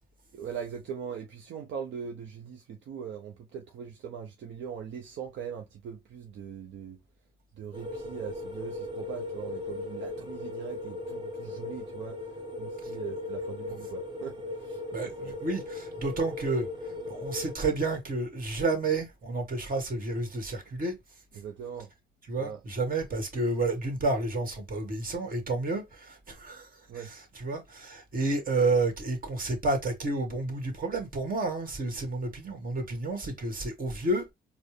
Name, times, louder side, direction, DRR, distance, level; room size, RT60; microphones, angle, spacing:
voice 1, 0.3-7.0 7.6-12.2 12.6-15.4 21.3-21.9 22.3-22.6 26.9-27.1, right 7 dB, 70° right, 0.7 m, -41 dB
sound 1, 7.7-17.6, left 2 dB, 25° right, 1.3 m, -38 dB
voice 2, 14.9-16.7 17.1-20.9 22.3-26.7 27.4-34.3, right 2 dB, 45° right, 1.6 m, -30 dB
4.3 x 2.1 x 3.2 m
cardioid pair, 90°, 20 cm